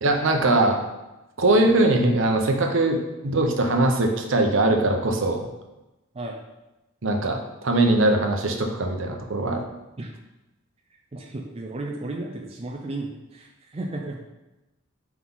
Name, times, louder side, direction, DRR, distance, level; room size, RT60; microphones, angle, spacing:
voice 1, 0.0-0.8 1.4-5.4 7.0-9.6, right 2 dB, 65° right, 3 dB, 0.8 m, -21 dB
voice 2, 11.1-14.2, right 2 dB, 30° right, 1 dB, 0.5 m, -34 dB
4.5 x 3.9 x 5.5 m, 1.0 s
head